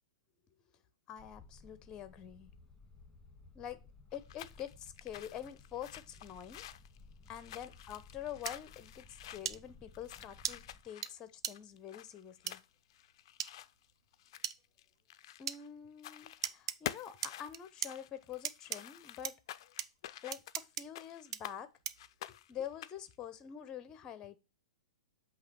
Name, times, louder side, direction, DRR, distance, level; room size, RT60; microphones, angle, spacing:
voice 1, 1.1-2.5 3.5-3.8 4.1-6.7 7.3-12.6 15.4-19.4 20.2-21.7 22.5-24.4, left 9 dB, 25° left, 0.8 m, -46 dB
sound 1, 1.2-10.8, left 3 dB, 10° left, 2.3 m, -58 dB
sound 2, 4.1-15.7 16.0-16.5 16.8-21.6 22.0-23.1, left 13 dB, 55° left, 0.4 m, -49 dB
sound 3, 8.5-8.6 9.4-9.6 10.4-10.5 11.0-11.1 11.4-11.5 12.5-12.6 13.4-13.5 14.4-14.6 15.5-15.6 16.4-16.8 17.2-17.9 18.4-18.8 19.2-19.3 19.8-19.9 20.3-20.8 21.3-21.4 21.8-22.1, right 10 dB, 60° right, 0.5 m, -37 dB
8.1 x 2.9 x 5.8 m
hypercardioid pair, 120°, 3 cm